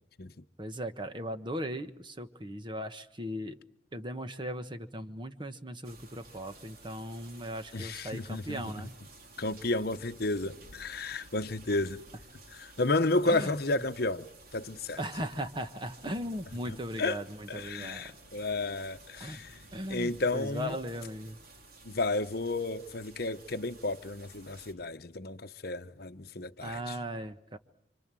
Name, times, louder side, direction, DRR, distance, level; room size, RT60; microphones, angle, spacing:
voice 1, 0.6-3.6 3.9-9.0 13.2-13.5 15.0-18.1 19.2-19.4 19.7-21.4 26.6-27.6, equal, 25° right, 1.3 m, -38 dB
sound 1, 5.8-24.7, right 2 dB, 50° right, 4.1 m, -54 dB
voice 2, 7.7-8.9 9.4-12.0 12.5-14.3 14.5-15.0 16.7-17.2 17.5-19.6 19.9-20.8 21.8-27.0, left 2 dB, 55° left, 1.0 m, -32 dB
29.0 x 25.5 x 7.7 m
head